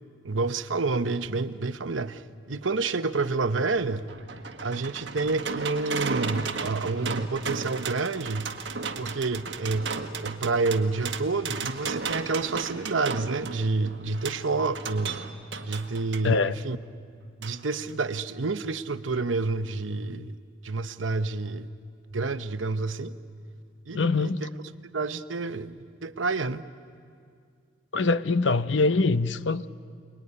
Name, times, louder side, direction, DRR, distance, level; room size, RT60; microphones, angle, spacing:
voice 1, 0.2-2.2 2.5-4.1 4.6-8.5 9.0-9.9 10.2-15.2 15.6-16.8 17.4-20.4 20.6-21.7 22.1-23.2 23.9-24.5 24.9-26.6, right 3 dB, 85° right, 0.9 m, -29 dB
sound 1, 3.7-16.3 17.4-17.6 17.9-18.0, right 5 dB, 60° right, 1.5 m, -35 dB
voice 2, 16.2-16.6 23.9-24.4 27.9-29.7, left 3 dB, 70° left, 0.7 m, -23 dB
29.0 x 20.5 x 9.7 m
head